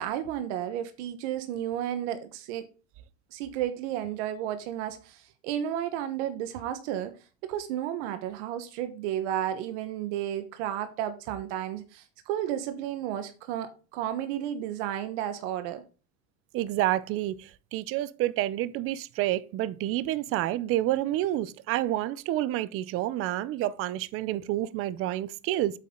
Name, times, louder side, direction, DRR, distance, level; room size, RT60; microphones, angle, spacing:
voice 1, 0.0-2.6 3.3-7.1 7.4-15.8, right 11 dB, 85° right, 1.3 m, -32 dB
voice 2, 16.5-25.8, right 14 dB, 40° right, 0.6 m, -29 dB
8.4 x 7.5 x 3.8 m
cardioid pair, 160°, 34 cm